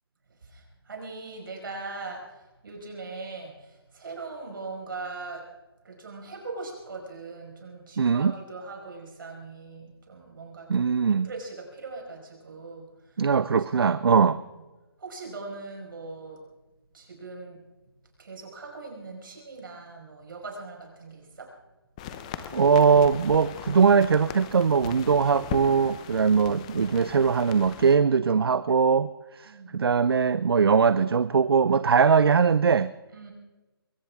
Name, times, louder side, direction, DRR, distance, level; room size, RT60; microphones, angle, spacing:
voice 1, 0.4-5.4 5.8-13.2 13.9-14.0 15.0-16.4 16.9-17.6 18.2-21.5 29.4-29.8 33.1-33.3, right 3 dB, 55° right, 1 dB, 5.1 m, -40 dB
voice 2, 8.0-8.3 10.7-11.3 13.2-14.4 22.5-32.9, right 6 dB, 75° right, 16 dB, 0.5 m, -21 dB
sound 1, 22.0-28.0, left 9 dB, 15° left, 0.7 m, -39 dB
22.0 x 17.0 x 3.6 m, 1.1 s
hypercardioid pair, 165°, 13 cm